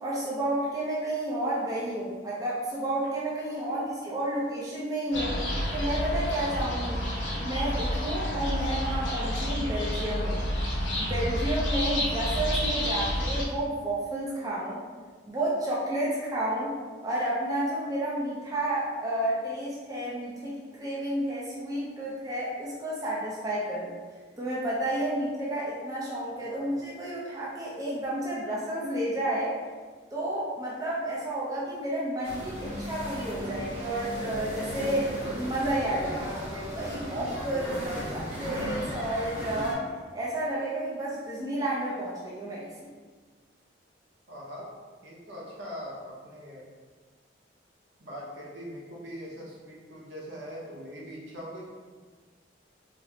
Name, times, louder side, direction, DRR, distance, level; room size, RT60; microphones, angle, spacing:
voice 1, 0.0-5.4 5.7-7.1 7.4-10.4 11.0-14.8 15.3-16.7 17.0-24.0 24.4-29.6 30.1-39.8 40.1-42.9, right 1 dB, 20° right, -7 dB, 0.5 m, -31 dB
sound 1, 5.1-13.4, equal, 75° left, 0.7 m, -29 dB
voice 2, 26.4-26.7 44.3-44.7 45.0-46.7 48.0-51.6, equal, 75° right, -4 dB, 0.8 m, -41 dB
sound 2, 32.2-39.7, equal, 40° right, 1.0 m, -36 dB
4.1 x 2.1 x 2.8 m, 1.4 s
head